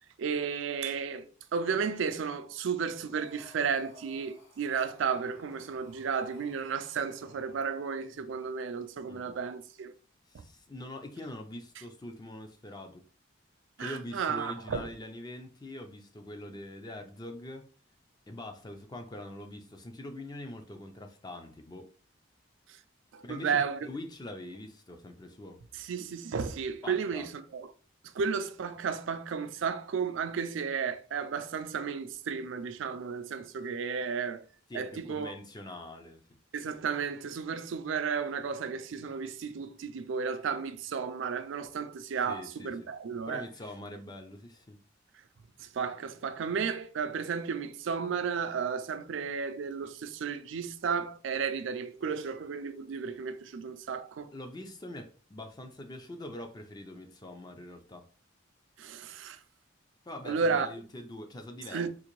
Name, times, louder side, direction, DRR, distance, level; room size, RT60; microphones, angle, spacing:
voice 1, 0.2-9.9 13.8-14.9 22.7-22.8 23.1-23.8 25.7-27.7 28.0-34.4 34.7-35.3 36.5-43.4 45.6-54.3 58.8-59.4 60.3-60.7 61.7-61.9, right 6 dB, 70° right, 0.4 m, -33 dB
Breathing, 3.0-7.9, left 1 dB, 75° left, 1.8 m, -57 dB
voice 2, 10.3-13.0 13.8-17.7 18.3-21.9 23.2-25.6 26.8-27.3 34.7-36.2 42.3-42.9 43.3-44.8 54.3-58.1 60.0-61.9, left 1 dB, 20° left, 0.4 m, -43 dB
3.8 x 2.5 x 3.0 m
head